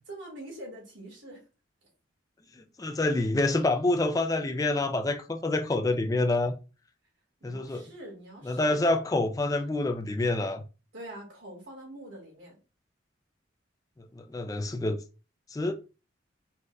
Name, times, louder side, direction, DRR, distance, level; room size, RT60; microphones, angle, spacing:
voice 1, 0.1-1.4 7.4-8.8 10.9-12.5, right 1 dB, 75° right, 1.9 m, -44 dB
voice 2, 2.8-6.5 7.4-7.8 8.4-10.6 14.2-15.0 15.5-15.7, left 2 dB, 20° left, 0.3 m, -27 dB
4.2 x 2.4 x 3.1 m
head